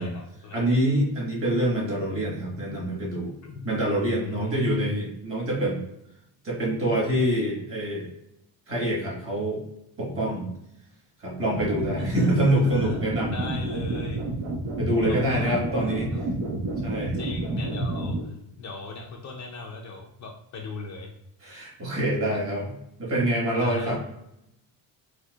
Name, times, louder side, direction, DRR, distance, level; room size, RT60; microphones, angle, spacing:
voice 1, 0.0-0.6 3.4-3.6 4.2-5.0 12.0-14.3 15.1-15.9 17.1-21.1 22.3-22.5 23.5-24.0, left 4 dB, 40° left, 0 dB, 0.5 m, -36 dB
voice 2, 0.5-3.3 3.6-5.8 6.4-8.1 8.7-9.6 10.0-10.5 11.2-13.3 14.8-16.1 16.8-17.2 21.4-22.7 23.0-24.0, right 1 dB, 30° right, -4 dB, 1.4 m, -26 dB
sound 1, 11.5-18.2, right 2 dB, 75° right, 1.1 m, -29 dB
4.4 x 2.2 x 2.3 m, 0.80 s
cardioid pair, 145°, 44 cm